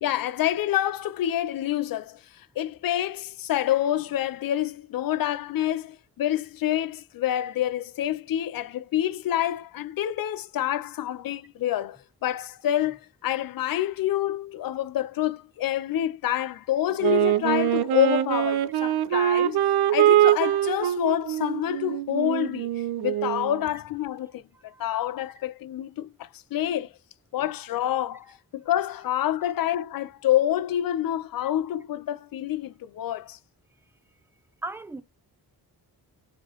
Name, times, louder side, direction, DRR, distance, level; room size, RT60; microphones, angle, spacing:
voice 1, 0.0-2.2 2.6-19.6 19.9-22.7 23.0-24.4 24.8-26.9 27.3-33.4, left 12 dB, 65° left, 0.5 m, -27 dB
Wind instrument woodwind instrument, 17.0-23.6, right 12 dB, 90° right, 0.5 m, -23 dB
voice 2, 24.5-24.9 27.4-27.5 31.4-31.5 34.6-35.0, right 2 dB, 5° right, 0.4 m, -38 dB
4.9 x 3.0 x 2.9 m
wide cardioid pair, 130°, 38 cm